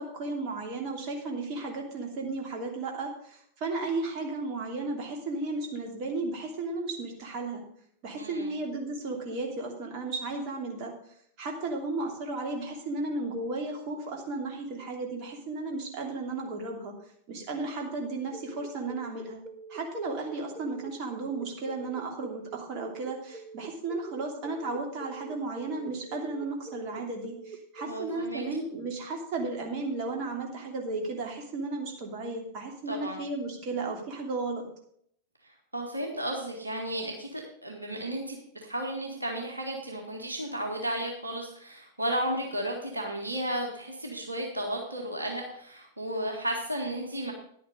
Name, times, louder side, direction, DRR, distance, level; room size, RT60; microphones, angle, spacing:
voice 1, 0.0-7.6 8.0-10.9 11.4-16.9 17.3-19.4 19.7-34.6, right 3 dB, 40° right, 1 dB, 2.8 m, -34 dB
voice 2, 8.2-8.5 27.9-28.4 32.9-33.2 33.6-33.7 35.4-47.3, right 1 dB, 80° right, 1 dB, 1.9 m, -34 dB
sound 1, 18.3-28.1, right 5 dB, 20° right, 1.4 m, -45 dB
11.0 x 8.5 x 5.2 m, 0.67 s
figure-of-eight pair, 90°, 0 cm